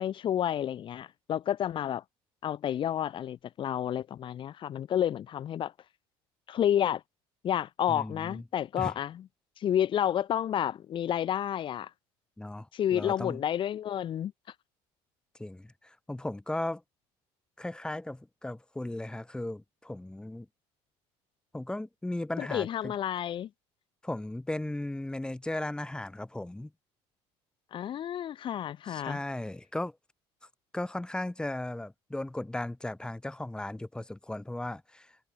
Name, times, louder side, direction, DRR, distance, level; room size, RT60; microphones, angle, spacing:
voice 1, 0.0-2.0 2.4-5.7 6.5-7.0 7.4-9.2 9.6-11.9 12.7-14.3 22.4-23.5 27.7-29.2, left 10 dB, 45° left, 1.2 m, -30 dB
voice 2, 7.9-8.4 8.8-8.9 12.4-13.4 15.4-16.8 17.6-20.5 21.5-22.9 24.0-26.7 28.9-30.0 30.7-35.2, left 1 dB, 5° left, 3.4 m, -36 dB
cardioid pair, 115°, 12 cm